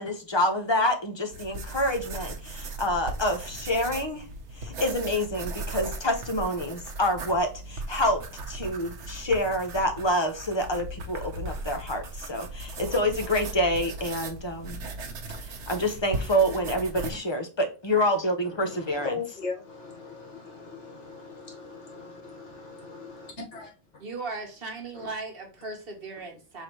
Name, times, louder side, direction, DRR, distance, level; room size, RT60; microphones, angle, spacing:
voice 1, 0.0-4.2 4.6-8.2 8.5-14.8 15.7-19.1, equal, 25° left, 0.8 m, -27 dB
sound 1, 1.3-17.1, right 2 dB, 90° right, 1.1 m, -38 dB
voice 2, 16.9-17.4 18.4-23.7 24.9-25.1, left 4 dB, 85° left, 1.7 m, -39 dB
voice 3, 24.0-26.6, right 3 dB, 55° right, 1.3 m, -37 dB
4.6 x 3.4 x 2.9 m
omnidirectional pair, 1.2 m